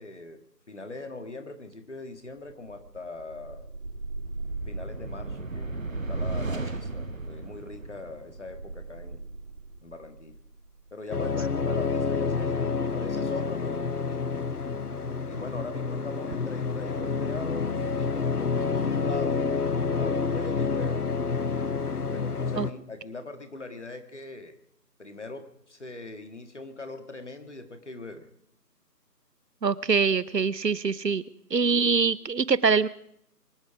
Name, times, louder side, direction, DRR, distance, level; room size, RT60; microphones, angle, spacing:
voice 1, 0.0-3.7 4.7-5.8 6.1-9.3 9.8-10.4 10.9-14.5 15.3-21.0 22.1-24.6 25.0-28.3, left 3 dB, 45° left, 8 dB, 1.8 m, -41 dB
sound 1, 2.5-10.9, right 3 dB, 50° right, 1.6 m, -36 dB
sound 2, 11.1-22.7, left 5 dB, 65° left, 1.1 m, -28 dB
voice 2, 29.6-31.2 31.5-32.9, right 5 dB, 80° right, 19 dB, 1.0 m, -24 dB
24.0 x 12.0 x 4.9 m, 0.70 s
figure-of-eight pair, 170°, 49 cm